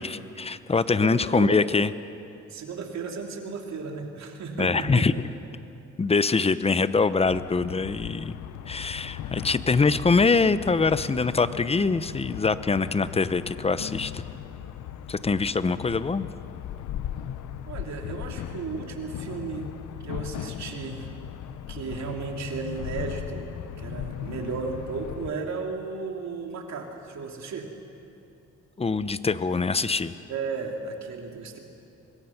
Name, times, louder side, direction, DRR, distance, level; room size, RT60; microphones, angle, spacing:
voice 1, 0.0-1.9 4.6-5.1 6.0-8.4 8.7-14.2 15.1-16.3 28.8-30.1, left 4 dB, 20° left, 14 dB, 0.7 m, -24 dB
voice 2, 0.9-1.7 2.5-5.1 17.7-19.7 20.0-23.5 23.8-27.7 30.3-31.6, right 4 dB, 65° right, 2 dB, 2.9 m, -34 dB
sound 1, 7.2-25.3, left 10 dB, 75° left, 1.0 m, -37 dB
24.5 x 21.0 x 5.9 m, 2.7 s
cardioid pair, 90°, 30 cm